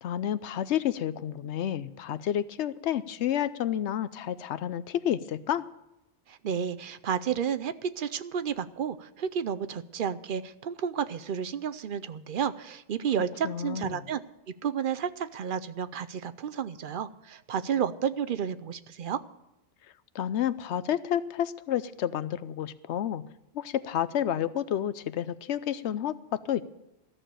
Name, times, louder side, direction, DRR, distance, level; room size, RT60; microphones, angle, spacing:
voice 1, 0.0-5.6 13.4-14.0 20.1-23.2 23.5-26.6, left 10 dB, 90° left, 15 dB, 0.9 m, -30 dB
voice 2, 6.3-14.2 14.6-19.2, right 8 dB, 60° right, 12 dB, 0.7 m, -31 dB
14.0 x 6.6 x 9.0 m, 0.91 s
omnidirectional pair, 1.1 m